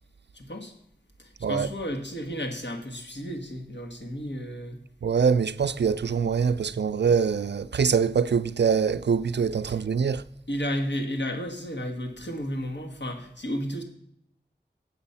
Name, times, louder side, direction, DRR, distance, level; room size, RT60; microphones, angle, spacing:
voice 1, 0.3-0.7 1.2-4.8 9.7-9.8 10.5-13.8, equal, 85° left, 1.5 m, -32 dB
voice 2, 5.0-10.2, right 6 dB, 75° right, 0.4 m, -24 dB
8.0 x 7.0 x 5.5 m
wide cardioid pair, 40°, 18 cm